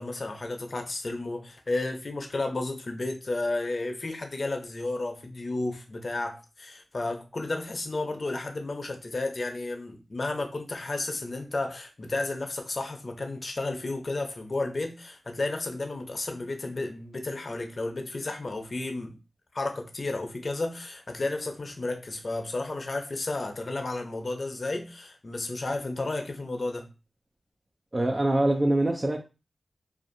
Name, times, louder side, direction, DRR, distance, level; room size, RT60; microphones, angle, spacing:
voice 1, 0.0-19.2 19.5-26.9, left 2 dB, 55° left, 0.6 m, -32 dB
voice 2, 27.9-29.2, right 1 dB, 35° right, 0.4 m, -24 dB
2.5 x 2.4 x 2.6 m
cardioid pair, 50°, 0 cm